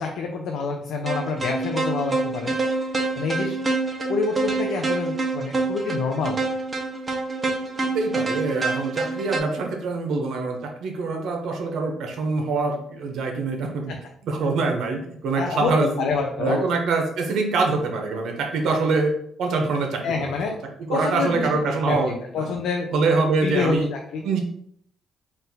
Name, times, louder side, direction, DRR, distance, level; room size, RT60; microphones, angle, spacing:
voice 1, 0.0-2.6 3.2-3.6 4.1-6.4 13.9-14.0 15.4-16.6 20.0-20.6 20.9-22.9 23.4-24.2, left 4 dB, 75° left, 2 dB, 0.5 m, -27 dB
sound 1, 1.0-9.4, right 3 dB, 30° right, 0.8 m, -26 dB
voice 2, 7.9-13.9 14.2-16.1 16.4-19.1 19.4-20.4 20.9-22.5 22.9-23.9 24.2-24.4, right 3 dB, 75° right, 2 dB, 0.9 m, -24 dB
4.1 x 2.6 x 3.9 m, 0.67 s
cardioid pair, 90°, 0 cm